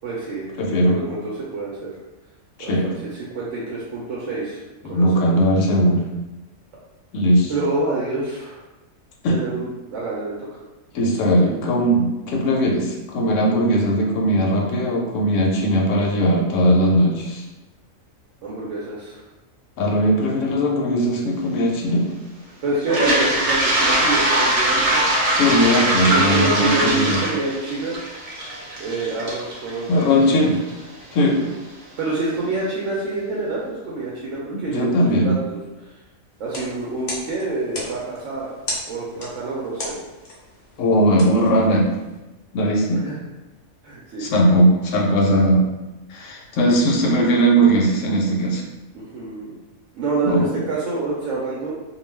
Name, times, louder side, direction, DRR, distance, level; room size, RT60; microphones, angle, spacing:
voice 1, 0.0-2.0 2.6-5.5 7.5-8.6 9.3-10.6 18.4-19.2 22.6-25.1 26.0-28.0 28.8-30.5 31.2-31.6 32.0-35.4 35.8-35.9 36.4-38.5 38.9-40.0 43.0-43.2 43.8-44.3 48.9-49.6 49.9-51.7, right 2 dB, 70° right, -5 dB, 0.9 m, -27 dB
voice 2, 0.6-1.0 2.7-2.9 4.8-6.0 7.1-7.5 9.2-9.4 10.9-17.4 19.8-22.1 25.3-27.2 29.9-30.5 31.1-31.4 34.7-35.3 40.8-41.9 42.5-43.0 44.2-45.7 46.1-48.6 50.3-50.6, equal, 70° left, 0 dB, 0.9 m, -18 dB
Toilet flush, 22.8-30.7, right 1 dB, 55° right, 0.4 m, -21 dB
sound 1, 36.4-42.2, left 1 dB, 45° left, 0.5 m, -36 dB
2.3 x 2.2 x 3.2 m, 1.1 s
omnidirectional pair, 1.4 m